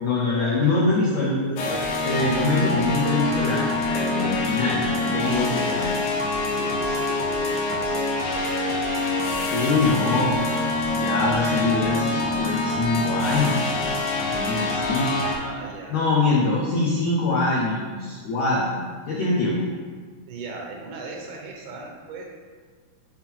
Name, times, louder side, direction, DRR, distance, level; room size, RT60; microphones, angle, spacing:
voice 1, 0.0-1.7 2.0-5.9 9.5-10.4 10.9-15.1 15.9-19.6, left 3 dB, 85° left, -5 dB, 1.5 m, -24 dB
sound 1, 1.6-15.3, left 2 dB, 70° left, 2.0 m, -25 dB
voice 2, 5.4-6.0 6.5-8.9 9.8-10.4 14.7-16.0 20.3-22.3, right 3 dB, 80° right, 0 dB, 3.0 m, -38 dB
7.4 x 3.8 x 4.5 m, 1.6 s
omnidirectional pair, 4.6 m